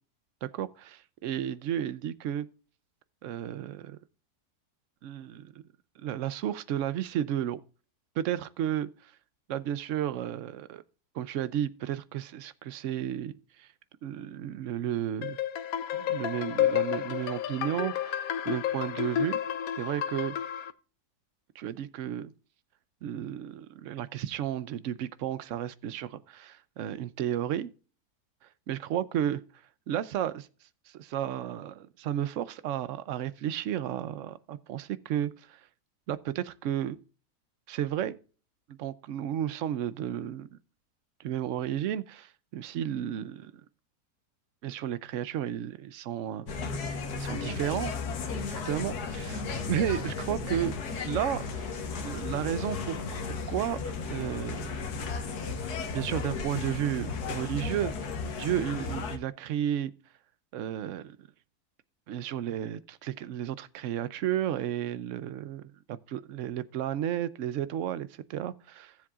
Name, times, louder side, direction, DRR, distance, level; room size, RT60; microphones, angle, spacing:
voice 1, 0.4-2.5 3.2-4.0 5.0-5.5 6.0-7.6 8.2-9.1 9.5-10.8 11.1-13.7 14.0-15.4 15.9-19.4 19.8-20.3 21.6-22.3 23.0-27.7 28.7-29.4 29.9-30.5 30.9-35.6 36.1-37.0 37.7-38.2 38.7-40.6 41.2-43.5 44.6-46.5 47.2-47.9 48.6-50.7 51.0-53.0 53.5-54.8 55.9-57.9 58.4-59.9 60.5-61.3 62.1-68.9, right 10 dB, 65° right, 0.9 m, -33 dB
sound 1, 15.2-20.7, left 10 dB, 75° left, 1.1 m, -31 dB
sound 2, 46.5-59.2, left 4 dB, 90° left, 1.6 m, -34 dB
17.0 x 7.4 x 2.4 m
omnidirectional pair, 1.6 m